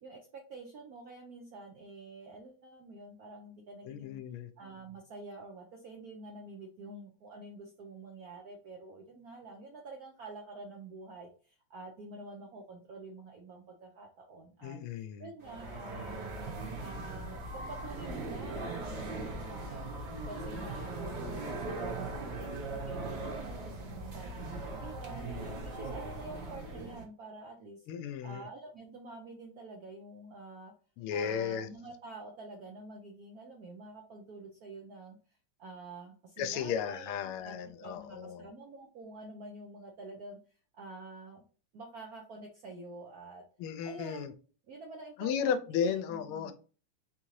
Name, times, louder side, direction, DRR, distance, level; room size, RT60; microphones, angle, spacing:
voice 1, 0.0-4.2 4.6-16.4 16.8-19.9 20.2-22.1 22.4-25.3 25.6-27.8 28.2-30.7 31.1-35.2 35.6-37.5 37.8-40.4 40.7-41.4 41.7-43.4 43.8-44.4 44.7-46.5, right 2 dB, 70° right, 0.9 m, -48 dB
voice 2, 3.9-4.5 14.6-15.3 27.9-28.4 31.0-31.7 36.4-38.5 43.6-44.3 45.2-46.5, left 7 dB, 80° left, 1.4 m, -34 dB
sound 1, 15.4-27.0, right 2 dB, 55° right, 1.6 m, -39 dB
4.2 x 3.7 x 3.1 m
omnidirectional pair, 2.4 m